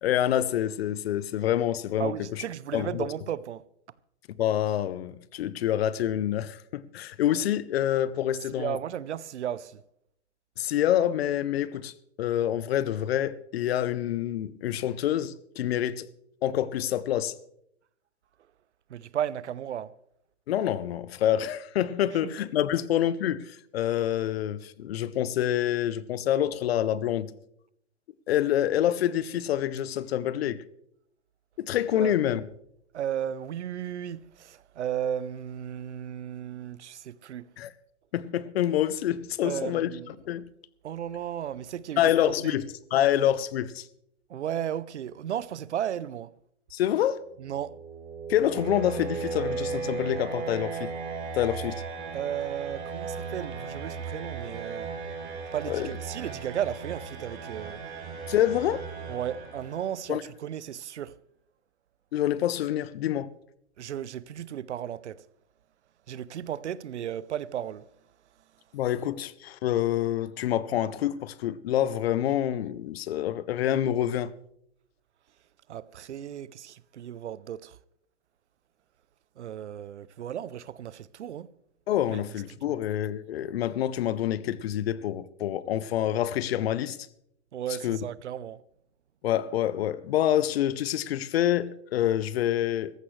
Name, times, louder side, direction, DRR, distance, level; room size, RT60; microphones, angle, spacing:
voice 1, 0.0-2.4 2.7-3.1 4.4-8.8 10.6-11.9 12.2-16.1 16.4-17.3 20.5-27.3 28.3-30.6 31.6-32.4 37.6-37.7 38.1-40.5 42.0-43.9 46.7-47.2 48.3-50.9 51.3-51.8 55.7-55.9 58.3-58.8 60.1-60.2 62.1-63.3 68.7-74.3 81.9-87.0 87.8-88.0 89.2-92.9, left 11 dB, 60° left, 0.8 m, -27 dB
voice 2, 2.0-3.6 8.5-9.8 18.9-19.9 22.2-22.3 32.0-32.2 32.9-37.5 39.4-40.1 40.8-42.0 42.3-42.5 44.3-46.3 47.4-47.8 52.1-54.9 55.5-57.8 59.1-61.1 63.8-65.2 66.1-67.9 75.7-77.8 79.4-81.5 82.1-82.2 82.7-82.8 87.5-88.6, right 10 dB, 85° right, 0.7 m, -34 dB
sound 1, 47.2-60.1, right 5 dB, 30° right, 5.3 m, -36 dB
17.5 x 14.5 x 3.3 m
hypercardioid pair, 135°, 34 cm